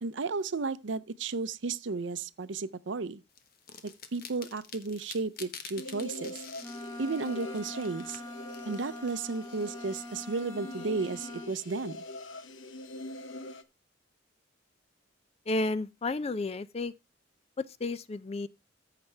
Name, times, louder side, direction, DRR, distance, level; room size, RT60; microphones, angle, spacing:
voice 1, 0.0-3.2 3.8-6.4 7.0-8.2 8.6-12.0, right 4 dB, 70° right, 0.6 m, -33 dB
sound 1, 3.4-10.2, left 7 dB, 50° left, 1.2 m, -49 dB
sound 2, 5.7-13.6, left 2 dB, 80° left, 0.8 m, -44 dB
Wind instrument woodwind instrument, 6.6-11.5, left 1 dB, 15° left, 1.6 m, -43 dB
voice 2, 15.5-16.9 17.8-18.5, left 2 dB, 30° left, 0.4 m, -32 dB
14.0 x 5.9 x 3.3 m
head